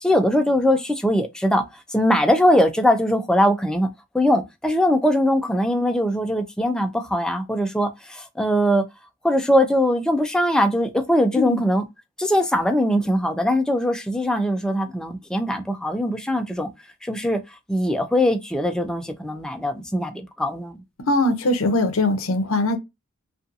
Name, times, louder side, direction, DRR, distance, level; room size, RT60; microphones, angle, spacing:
voice 1, 0.0-1.6 1.9-3.9 4.1-8.8 9.2-11.8 12.2-16.7 17.0-17.4 17.7-20.8, equal, 5° left, 0.3 m, -21 dB
voice 2, 21.1-22.8, left 2 dB, 70° left, 0.6 m, -21 dB
2.6 x 2.3 x 2.5 m
head